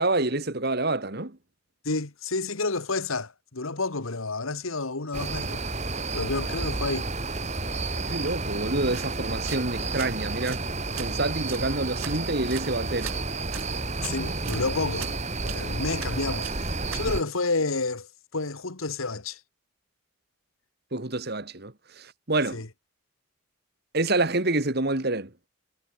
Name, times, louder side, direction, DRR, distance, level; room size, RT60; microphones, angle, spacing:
voice 1, 0.0-1.4 8.1-10.6 11.0-13.1 20.9-22.6 23.9-25.3, right 2 dB, 50° right, 2.1 m, -27 dB
voice 2, 1.9-5.6 6.1-7.1 14.0-15.1 15.4-19.4 22.5-22.7, left 3 dB, 75° left, 1.8 m, -30 dB
sound 1, 5.1-17.2, right 3 dB, 30° right, 2.6 m, -31 dB
sound 2, 8.7-17.0, right 10 dB, 80° right, 6.0 m, -43 dB
head